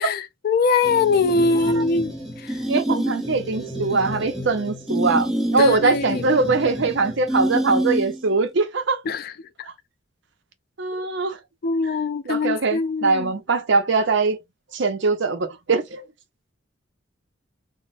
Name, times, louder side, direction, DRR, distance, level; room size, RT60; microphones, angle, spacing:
voice 1, 0.0-2.6 5.6-6.2 9.1-9.3 11.6-13.3, left 4 dB, 45° left, 0.3 m, -22 dB
sound 1, 0.8-8.3, right 1 dB, ahead, 0.7 m, -28 dB
voice 2, 2.7-9.0 10.8-11.4 12.3-14.4 14.7-16.0, right 4 dB, 60° right, 0.6 m, -22 dB
3.6 x 2.0 x 2.4 m
head